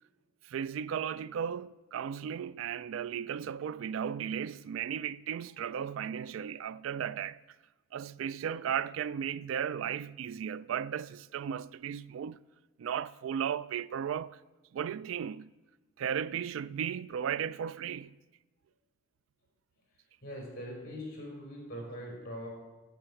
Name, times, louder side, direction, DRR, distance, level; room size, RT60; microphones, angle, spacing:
voice 1, 0.4-7.4 7.9-12.4 12.8-14.4 14.7-15.5 16.0-18.1, right 8 dB, 80° right, 0.3 m, -35 dB
voice 2, 20.2-22.5, equal, 45° left, 4.2 m, -42 dB
8.9 x 7.8 x 6.9 m
head